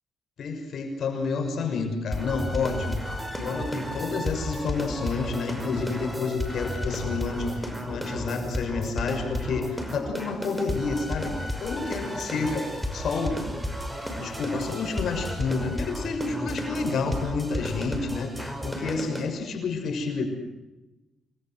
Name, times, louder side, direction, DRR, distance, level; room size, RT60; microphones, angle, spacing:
voice 1, 0.4-13.5 14.1-20.3, left 4 dB, 60° left, 5 dB, 6.4 m, -30 dB
sound 1, 2.1-19.3, equal, 5° right, 5.6 m, -33 dB
27.5 x 21.0 x 7.8 m, 1.0 s
cardioid pair, 90°, 0 cm